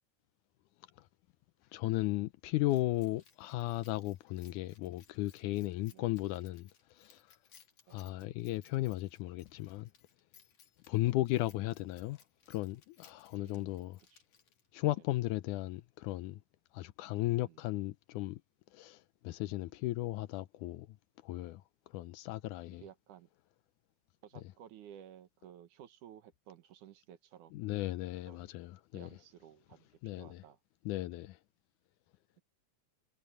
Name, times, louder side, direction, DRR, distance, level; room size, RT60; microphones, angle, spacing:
voice 1, 1.7-7.2 7.9-9.9 10.9-12.2 12.5-14.0 14.7-16.4 16.7-18.4 18.7-20.9 21.2-21.6 21.9-22.8 27.5-29.1 30.0-30.4 30.9-31.4, left 17 dB, 85° left, 2.2 m, -35 dB
Keys jangling, 2.7-14.8, left 7 dB, 65° left, 4.0 m, -65 dB
voice 2, 5.9-6.3 7.9-8.2 11.0-11.2 13.3-13.8 14.1-14.2 15.0-15.1 17.4-17.7 19.5-19.7 22.8-23.3 24.2-27.7 28.3-28.5 28.9-30.6, right 10 dB, 80° right, 2.8 m, -55 dB
omnidirectional pair, 3.5 m